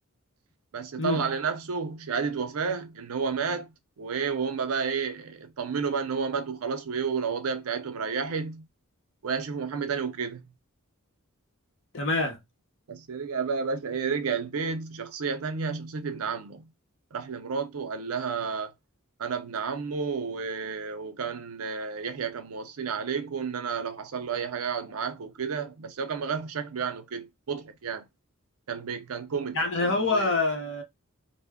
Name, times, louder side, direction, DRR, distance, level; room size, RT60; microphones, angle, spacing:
voice 1, 0.7-8.7 9.2-10.4 12.9-16.7 17.1-18.7 19.2-28.1 28.7-30.3, right 5 dB, 70° right, 0.5 m, -31 dB
voice 2, 11.9-12.4 29.5-30.8, left 3 dB, 60° left, 0.8 m, -26 dB
2.2 x 2.1 x 3.4 m
head